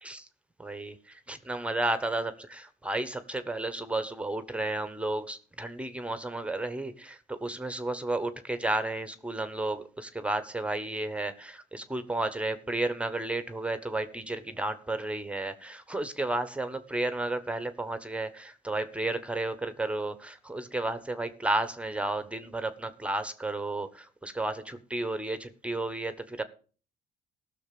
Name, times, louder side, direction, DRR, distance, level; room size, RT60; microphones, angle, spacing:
voice 1, 0.6-26.4, right 2 dB, 5° right, 1.2 m, -32 dB
15.0 x 6.6 x 6.8 m
cardioid pair, 110°, 17 cm